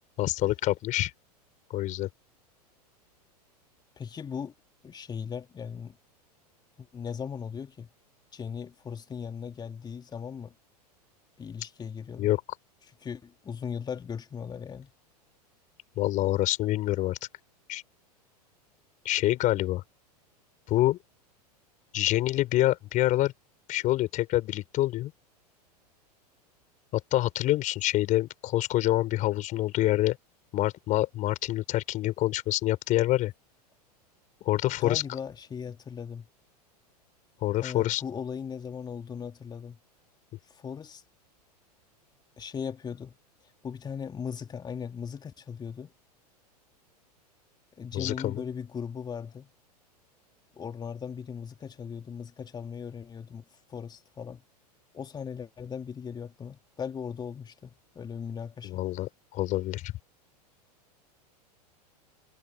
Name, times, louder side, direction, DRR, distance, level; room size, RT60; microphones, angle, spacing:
voice 1, 0.2-1.1 1.7-2.1 12.2-12.4 16.0-17.2 17.7-17.8 19.0-19.8 20.7-21.0 21.9-23.3 23.7-25.1 26.9-30.2 30.5-33.3 34.4-35.0 37.4-38.0 47.9-48.4 58.6-59.9, left 15 dB, 40° left, 5.1 m, -26 dB
voice 2, 4.0-4.5 4.8-6.0 6.8-7.9 8.3-10.5 11.4-12.3 13.0-14.9 34.8-36.3 37.6-39.8 40.5-41.0 42.4-43.2 43.6-45.9 47.8-49.5 50.6-54.4 54.9-58.7, left 7 dB, 20° left, 2.8 m, -38 dB
figure-of-eight pair, 90°, 21 cm